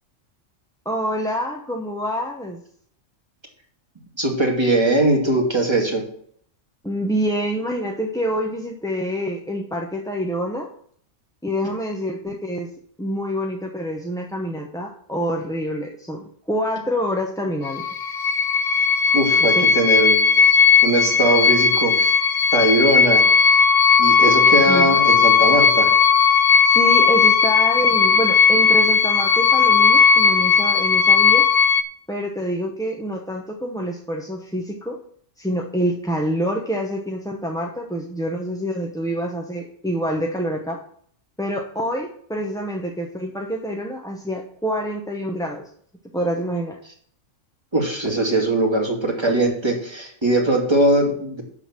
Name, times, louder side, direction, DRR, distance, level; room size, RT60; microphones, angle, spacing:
voice 1, 0.8-2.6 6.8-10.7 11.4-12.7 13.0-17.8 19.4-19.8 24.7-25.0 26.6-31.5 32.1-35.0 35.4-40.8 41.4-45.7 46.1-46.8, equal, 5° left, 0 dB, 0.7 m, -26 dB
voice 2, 4.2-6.0 19.1-20.2 20.8-22.1 22.5-23.2 24.0-25.9 47.7-51.4, right 1 dB, 20° right, 0 dB, 2.5 m, -20 dB
sound 1, 17.6-31.8, left 5 dB, 80° left, 1.1 m, -16 dB
12.0 x 4.0 x 7.3 m, 0.62 s
omnidirectional pair, 1.3 m